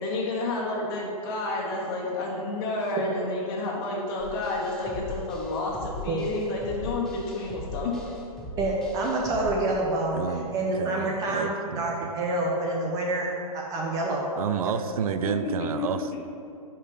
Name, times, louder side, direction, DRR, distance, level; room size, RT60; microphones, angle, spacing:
voice 1, 0.0-8.1 15.2-16.2, left 2 dB, 40° left, -4 dB, 1.8 m, -30 dB
sound 1, 4.2-9.5, left 2 dB, 5° left, 1.0 m, -39 dB
voice 2, 8.6-10.2 10.5-13.3 13.5-14.2 14.6-14.7, right 2 dB, 20° right, -2 dB, 0.6 m, -27 dB
voice 3, 10.1-11.9 14.4-16.2, right 7 dB, 70° right, 10 dB, 0.5 m, -30 dB
5.5 x 5.1 x 6.6 m, 2.5 s
hypercardioid pair, 160°, 19 cm